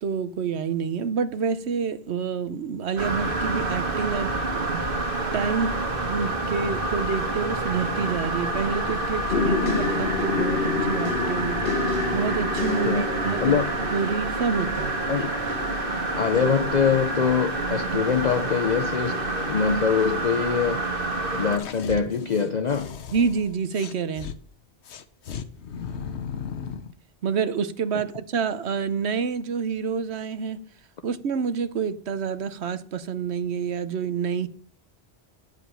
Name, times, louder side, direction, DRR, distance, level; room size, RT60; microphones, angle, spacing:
voice 1, 0.0-4.9 5.3-5.7 6.1-11.6 12.1-13.6 13.9-14.9 23.1-24.3 27.2-30.6 31.0-34.5, right 6 dB, 80° right, 1.1 m, -28 dB
sound 1, 3.0-21.6, right 2 dB, 55° right, 1.8 m, -28 dB
sound 2, 9.3-21.2 21.8-22.3 22.7-23.0, left 5 dB, 65° left, 1.1 m, -31 dB
voice 2, 16.1-20.8 21.3-23.0, left 6 dB, 45° left, 0.7 m, -24 dB
sound 3, 21.5-24.4 24.8-26.9, left 7 dB, 90° left, 1.1 m, -36 dB
9.3 x 7.9 x 5.5 m
omnidirectional pair, 1.1 m